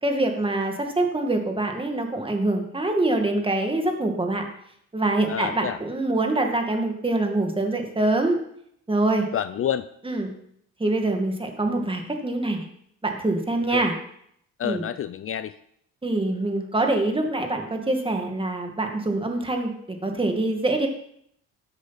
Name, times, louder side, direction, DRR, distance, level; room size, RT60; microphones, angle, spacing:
voice 1, 0.0-4.4 4.9-8.4 8.9-9.3 10.0-10.3 10.8-12.7 13.0-13.9 14.6-14.8 16.0-20.9, right 2 dB, 15° right, 3 dB, 2.1 m, -24 dB
voice 2, 5.3-5.8 9.3-9.9 13.7-13.8 14.6-15.5, left 9 dB, 45° left, 13 dB, 0.5 m, -28 dB
13.0 x 8.2 x 4.2 m, 0.70 s
cardioid pair, 90°, 30 cm